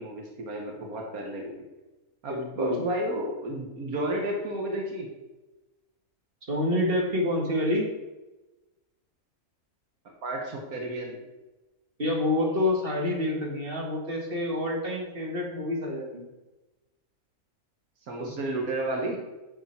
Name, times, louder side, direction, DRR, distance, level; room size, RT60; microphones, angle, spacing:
voice 1, 0.0-1.5 2.2-5.1 10.2-11.2 18.1-19.2, right 1 dB, 80° right, 1 dB, 1.9 m, -32 dB
voice 2, 2.3-2.8 6.5-7.9 12.0-16.3 18.2-18.4, left 1 dB, 40° right, 0 dB, 2.0 m, -27 dB
9.5 x 6.7 x 4.5 m, 1.1 s
omnidirectional pair, 1.5 m